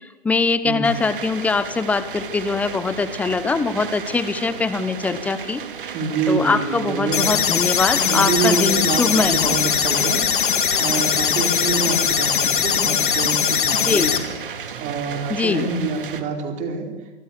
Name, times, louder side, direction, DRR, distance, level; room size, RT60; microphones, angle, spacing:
voice 1, 0.2-5.6 6.3-9.6 13.7-14.1 15.3-15.7, left 4 dB, 5° left, 14 dB, 1.0 m, -22 dB
sound 1, 0.8-16.2, right 7 dB, 50° right, 3.2 m, -34 dB
voice 2, 5.9-7.4 7.9-10.2 10.8-14.2 14.8-16.9, right 4 dB, 20° right, 5 dB, 4.5 m, -26 dB
sound 2, 7.1-14.2, left 8 dB, 50° left, 3.1 m, -20 dB
30.0 x 25.5 x 6.8 m, 1.1 s
figure-of-eight pair, 125°, 34 cm